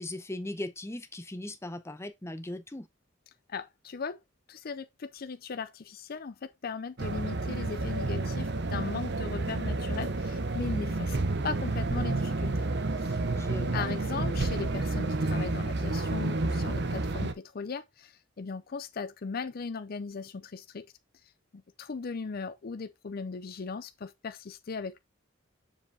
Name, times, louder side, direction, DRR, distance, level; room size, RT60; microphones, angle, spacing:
voice 1, 0.0-2.9 13.3-13.9, left 1 dB, 15° left, 0.7 m, -38 dB
voice 2, 3.5-4.2 4.5-11.2 11.4-12.7 13.0-13.2 13.7-20.9 21.5-25.0, left 5 dB, 50° left, 0.5 m, -38 dB
sound 1, 7.0-17.3, right 2 dB, 60° right, 0.8 m, -30 dB
7.0 x 5.1 x 3.3 m
head